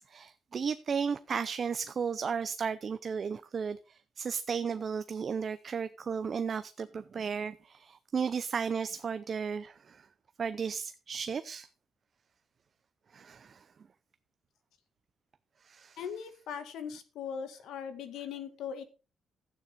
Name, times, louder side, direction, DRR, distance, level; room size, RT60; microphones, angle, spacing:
voice 1, 0.0-10.0 10.4-11.7 13.1-13.6 15.6-16.0, right 6 dB, 45° right, 13 dB, 0.6 m, -34 dB
voice 2, 16.0-18.8, left 7 dB, 80° left, 10 dB, 1.9 m, -39 dB
12.0 x 9.3 x 4.1 m, 0.32 s
cardioid pair, 90°, 0 cm